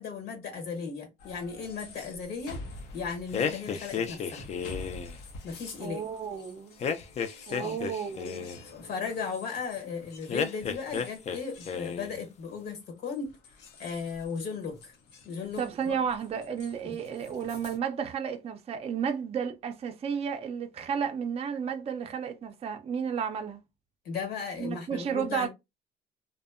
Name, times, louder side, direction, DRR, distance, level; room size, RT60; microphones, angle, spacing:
voice 1, 0.0-2.6 2.9-4.5 5.4-6.0 7.6-7.8 8.7-13.4 13.8-14.9 15.2-16.0 24.0-25.5, left 5 dB, 70° left, 1.1 m, -36 dB
sound 1, 1.2-17.8, left 2 dB, 90° left, 0.7 m, -49 dB
sound 2, 3.3-5.2 6.8-8.6 10.3-11.4 11.6-12.2, left 6 dB, 40° left, 0.4 m, -32 dB
voice 2, 5.8-6.8 7.5-8.5 15.6-23.6 24.6-25.5, right 7 dB, 35° right, 0.4 m, -32 dB
2.6 x 2.1 x 2.4 m
cardioid pair, 110°, 17 cm